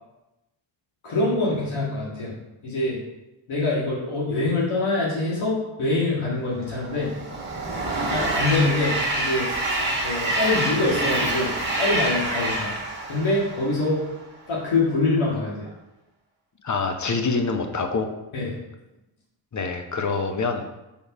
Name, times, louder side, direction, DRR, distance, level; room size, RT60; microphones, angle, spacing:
voice 1, 1.0-2.3 2.6-3.0 3.5-7.1 8.1-9.5 10.0-12.7 13.1-14.1 14.5-15.7 18.3-18.6, left 2 dB, 80° left, -6 dB, 2.0 m, -24 dB
Train, 6.6-14.1, right 1 dB, 20° right, 1.8 m, -27 dB
voice 2, 16.6-18.1 19.5-20.7, left 4 dB, 35° left, 6 dB, 0.9 m, -25 dB
5.2 x 4.8 x 5.4 m, 0.97 s
cardioid pair, 80°, 48 cm